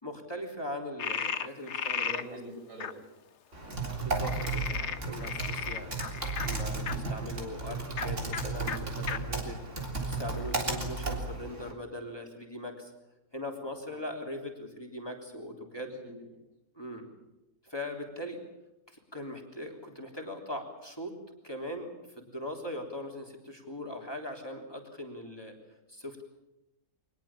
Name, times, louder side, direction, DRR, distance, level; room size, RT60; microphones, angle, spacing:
voice 1, 0.0-2.2 4.0-9.6 10.1-12.9 13.3-15.9 16.7-17.1 17.6-18.4 18.9-21.2 21.4-25.5 25.9-26.2, left 1 dB, 15° left, 1 dB, 3.5 m, -40 dB
Frog, 1.0-2.2 2.8-2.9 4.2-6.9 7.9-8.1 8.3-8.4 8.7-8.8 9.1-9.2 9.8-10.5, left 7 dB, 50° left, 1.1 m, -35 dB
voice 2, 1.9-3.0 3.6-3.8 15.8-16.1 16.9-17.1, right 1 dB, 85° right, 2 dB, 6.7 m, -45 dB
Typing, 3.5-11.7, right 3 dB, 45° right, 3.9 m, -34 dB
23.5 x 20.5 x 7.4 m, 0.94 s
omnidirectional pair, 1.7 m